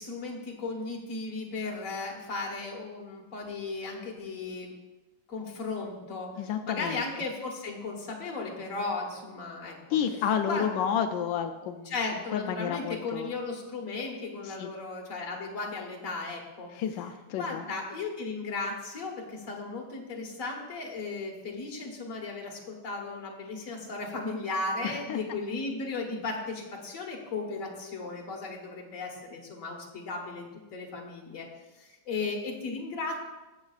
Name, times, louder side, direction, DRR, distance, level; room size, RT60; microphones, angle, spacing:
voice 1, 0.0-4.7 5.3-6.3 6.7-10.0 10.5-10.7 11.9-16.8 17.4-31.5 31.7-33.2, left 3 dB, 50° left, 1 dB, 1.6 m, -36 dB
voice 2, 6.4-7.0 9.9-11.9 12.3-13.3 14.4-14.7 16.7-17.6 24.8-25.2, left 8 dB, 90° left, 6 dB, 1.3 m, -30 dB
14.0 x 6.8 x 2.4 m, 1.1 s
omnidirectional pair, 1.9 m